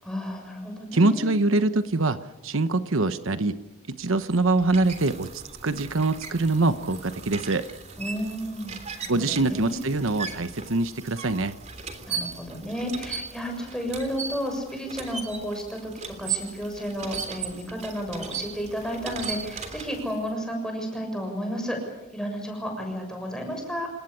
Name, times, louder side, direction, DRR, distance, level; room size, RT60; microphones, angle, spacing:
voice 1, 0.0-1.3 8.0-9.8 12.0-15.9 16.2-21.8 22.1-23.9, equal, 5° left, 2 dB, 6.8 m, -32 dB
voice 2, 0.9-2.2 2.4-3.6 3.9-7.6 9.1-11.5, right 2 dB, 75° right, 11 dB, 1.1 m, -24 dB
sound 1, 4.0-20.3, right 6 dB, 35° right, 3.3 m, -38 dB
28.0 x 18.5 x 8.6 m, 1.1 s
head